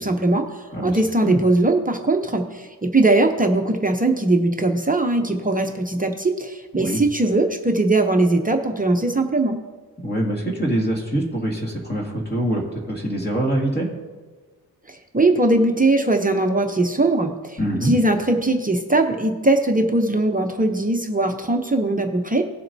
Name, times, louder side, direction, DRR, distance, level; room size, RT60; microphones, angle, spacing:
voice 1, 0.0-9.6 14.9-22.4, right 2 dB, 20° right, 4 dB, 0.7 m, -20 dB
voice 2, 0.7-1.4 6.8-7.0 10.0-13.9 17.6-17.9, right 1 dB, 25° left, -2 dB, 2.1 m, -24 dB
18.0 x 7.6 x 2.7 m, 1.4 s
wide cardioid pair, 125°, 40 cm